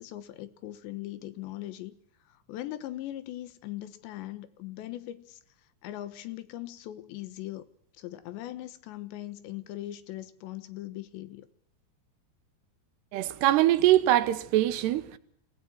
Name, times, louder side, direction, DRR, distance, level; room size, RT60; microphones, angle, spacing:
voice 1, 0.0-2.0 2.3-5.4 5.8-7.7 7.9-11.5, left 14 dB, 90° left, 3.5 m, -40 dB
voice 2, 13.1-15.2, right 14 dB, 75° right, 3.0 m, -23 dB
28.5 x 17.5 x 6.0 m
omnidirectional pair, 5.0 m